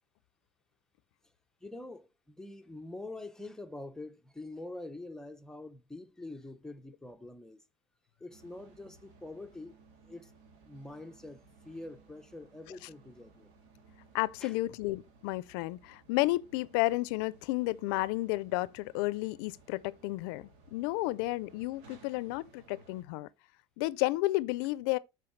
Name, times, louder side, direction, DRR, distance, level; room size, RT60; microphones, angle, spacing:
voice 1, 1.6-7.6 8.2-9.8 10.0-10.3 10.6-13.5 14.4-14.6, left 2 dB, 5° left, 0.8 m, -45 dB
sound 1, 8.3-23.0, right 3 dB, 80° right, 2.4 m, -60 dB
voice 2, 14.1-23.3 23.8-25.0, left 19 dB, 90° left, 0.5 m, -32 dB
12.5 x 4.7 x 3.2 m
cardioid pair, 125°, 12 cm